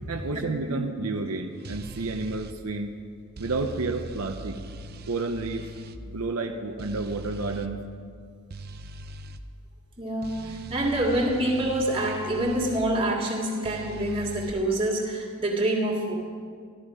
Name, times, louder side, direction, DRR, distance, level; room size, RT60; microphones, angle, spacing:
voice 1, 0.1-3.0 3.4-4.6 5.1-5.7 6.1-7.8, right 3 dB, 80° right, 4 dB, 0.7 m, -30 dB
sound 1, 1.6-2.6 3.4-6.0 6.8-7.7 8.5-9.4 10.2-12.8 13.6-14.5, right 2 dB, 45° right, 0.6 m, -41 dB
voice 2, 10.0-16.1, right 1 dB, 25° right, -2 dB, 2.0 m, -26 dB
13.5 x 13.0 x 4.9 m, 2.1 s
head